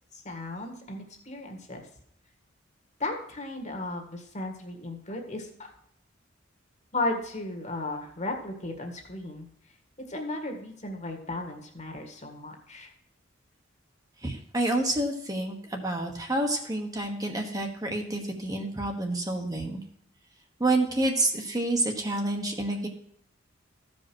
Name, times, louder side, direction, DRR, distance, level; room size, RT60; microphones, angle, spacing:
voice 1, 0.1-1.8 3.0-5.7 6.9-9.5 10.1-12.9, left 2 dB, 35° left, 3 dB, 1.8 m, -35 dB
voice 2, 14.2-19.8 20.6-22.9, right 2 dB, 20° right, 2 dB, 1.2 m, -28 dB
14.5 x 5.2 x 6.2 m, 0.71 s
head